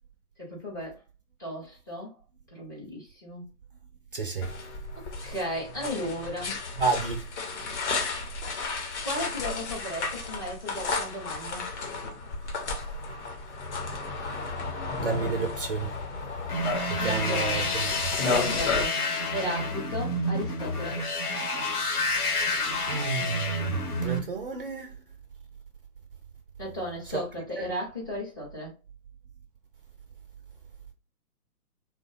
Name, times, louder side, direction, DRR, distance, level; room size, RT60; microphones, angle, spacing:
voice 1, 0.4-1.0 1.4-2.2 2.5-3.5 4.9-6.6 9.0-11.7 17.0-17.8 18.1-19.0 19.3-21.0 26.6-28.7, equal, 15° left, 0.5 m, -35 dB
voice 2, 4.1-4.5 6.8-7.2 15.0-15.9 16.9-17.6 22.9-24.9 27.6-27.7, right 4 dB, 40° right, 0.4 m, -30 dB
sound 1, 4.4-18.9, left 3 dB, 50° left, 0.9 m, -33 dB
sound 2, 16.5-24.2, left 2 dB, 75° left, 1.0 m, -29 dB
3.0 x 2.1 x 2.6 m
figure-of-eight pair, 130°, 45 cm